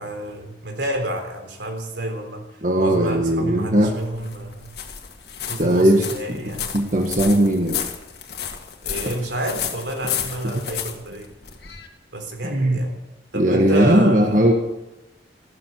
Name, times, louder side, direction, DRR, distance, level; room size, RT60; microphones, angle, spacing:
voice 1, 0.0-4.7 5.5-6.8 8.8-11.3 12.1-12.9 13.3-14.4, right 1 dB, 75° right, 4 dB, 3.6 m, -29 dB
voice 2, 2.6-3.9 5.6-6.4 6.7-7.8 12.4-12.8 13.3-14.5, right 1 dB, 45° right, 2 dB, 1.4 m, -18 dB
sound 1, 3.7-11.9, left 8 dB, 60° left, 1.9 m, -32 dB
14.0 x 12.5 x 7.5 m, 0.95 s
head